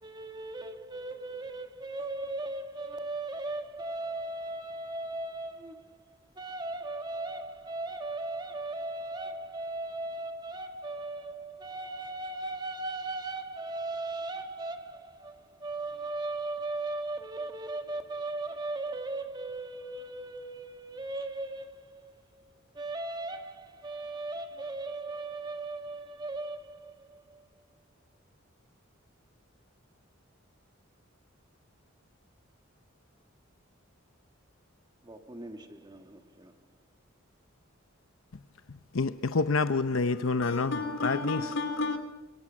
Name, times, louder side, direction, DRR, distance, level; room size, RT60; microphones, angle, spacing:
voice 1, 0.0-5.9 6.4-22.1 22.7-27.4 35.0-36.5, right 2 dB, 20° right, 1.6 m, -37 dB
voice 2, 38.9-40.7 41.0-41.4, left 3 dB, 85° left, 0.8 m, -27 dB
voice 3, 40.1-42.0, left 3 dB, 70° left, 3.2 m, -33 dB
26.0 x 23.5 x 6.2 m
head